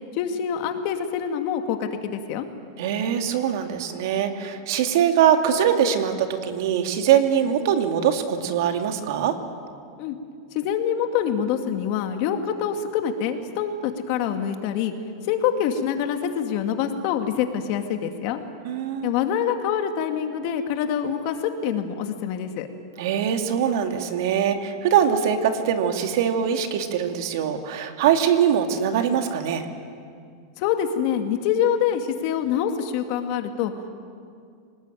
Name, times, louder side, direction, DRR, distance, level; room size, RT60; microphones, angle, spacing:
voice 1, 0.1-2.5 10.0-10.2 10.5-14.9 15.3-18.4 19.0-22.7 30.6-33.7, left 8 dB, 50° left, 6 dB, 2.3 m, -25 dB
voice 2, 2.8-9.4 18.6-19.1 23.0-29.7, right 8 dB, 65° right, 5 dB, 2.5 m, -22 dB
26.0 x 19.5 x 9.3 m, 2.3 s
supercardioid pair, 145°, 2 cm